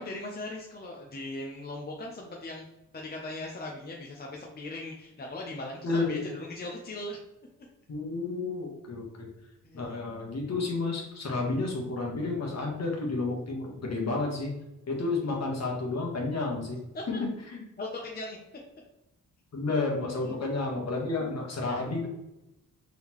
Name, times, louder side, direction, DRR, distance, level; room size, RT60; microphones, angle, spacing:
voice 1, 0.0-2.7 2.9-7.2 9.6-9.9 11.5-11.6 16.9-17.2 17.8-18.4 19.6-19.7 20.2-20.4 21.2-21.4, left 2 dB, 30° left, 0 dB, 0.6 m, -39 dB
voice 2, 5.8-6.2 7.9-9.3 9.7-14.5 14.9-16.8 17.5-17.6 19.5-22.1, left 3 dB, 50° left, 0 dB, 1.3 m, -31 dB
3.7 x 3.7 x 3.0 m, 0.89 s
cardioid pair, 100°, 32 cm